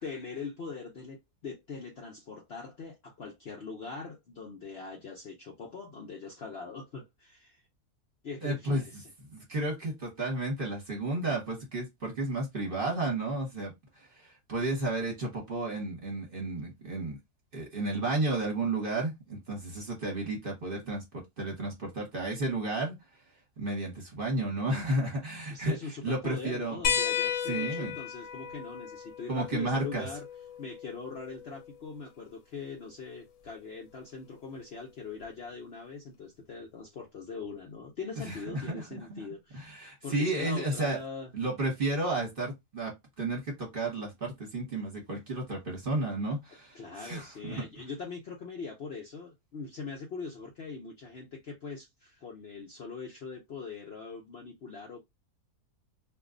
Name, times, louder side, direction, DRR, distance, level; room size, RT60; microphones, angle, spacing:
voice 1, 0.0-7.6 8.2-9.1 25.5-30.2 30.6-41.3 46.7-55.0, left 4 dB, 55° left, 0.8 m, -42 dB
voice 2, 8.4-8.8 9.3-17.2 17.5-22.9 23.6-25.8 26.0-26.8 27.5-27.9 29.3-30.1 38.5-39.2 39.5-41.0 41.3-47.7, right 2 dB, 40° right, 1.2 m, -32 dB
sound 1, 26.8-31.9 33.5-33.6 35.2-35.3, left 8 dB, 75° left, 1.1 m, -34 dB
2.6 x 2.3 x 3.7 m
omnidirectional pair, 1.6 m